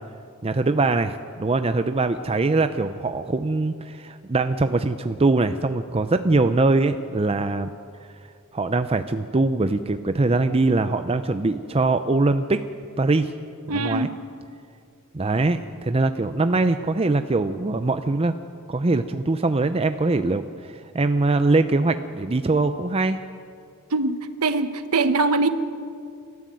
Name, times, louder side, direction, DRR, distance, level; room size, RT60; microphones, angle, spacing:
voice 1, 0.4-7.7 8.5-12.6 13.0-13.3 13.7-14.1 15.1-18.3 18.7-23.2, right 3 dB, 25° right, 9 dB, 0.5 m, -22 dB
voice 2, 13.7-14.1 23.9-25.5, right 3 dB, 80° right, 10 dB, 1.2 m, -22 dB
29.0 x 13.0 x 7.7 m, 2.5 s
head